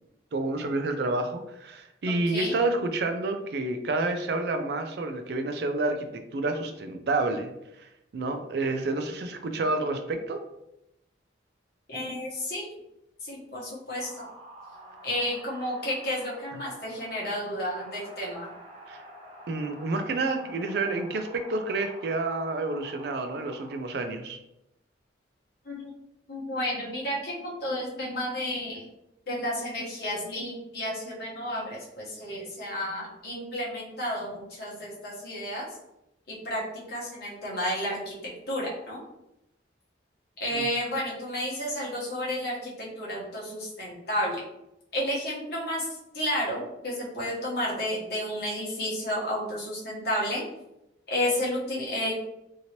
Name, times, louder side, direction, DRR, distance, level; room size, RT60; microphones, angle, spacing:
voice 1, 0.3-7.5 8.1-10.4 18.9-19.0 19.5-24.4 40.5-40.6, right 2 dB, 55° right, 6 dB, 0.4 m, -29 dB
voice 2, 2.3-2.6 11.9-12.7 13.2-14.3 15.0-18.5 25.6-25.9 26.3-28.9 29.3-35.7 36.3-36.6 36.9-39.0 40.4-44.4 44.9-50.4 51.1-52.1, left 1 dB, 55° left, -5 dB, 1.1 m, -31 dB
sound 1, 13.9-23.8, right 1 dB, 30° right, 0.9 m, -48 dB
2.9 x 2.7 x 2.9 m, 0.87 s
head